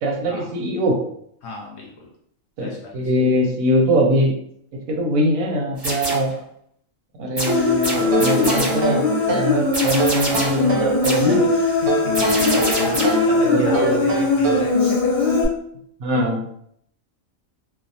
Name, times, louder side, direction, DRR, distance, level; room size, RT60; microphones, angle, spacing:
voice 1, 0.0-1.0 2.6-4.3 4.9-6.3 7.2-11.5 13.4-13.9 16.0-16.4, equal, 90° right, 0 dB, 1.1 m, -22 dB
voice 2, 1.4-2.1 2.6-3.1 11.8-15.1, left 2 dB, 65° left, -2 dB, 0.8 m, -33 dB
sound 1, 5.8-6.4 7.4-8.9 9.7-10.7 11.0-11.4 12.1-13.3, right 1 dB, 25° right, 0.6 m, -26 dB
Human voice, 7.5-15.4, left 3 dB, 35° left, 0.6 m, -20 dB
sound 2, 8.1-9.6 10.0-10.9 11.9-13.3 13.7-14.8, right 3 dB, 65° right, 0.7 m, -26 dB
2.7 x 2.0 x 2.7 m, 0.69 s
omnidirectional pair, 1.4 m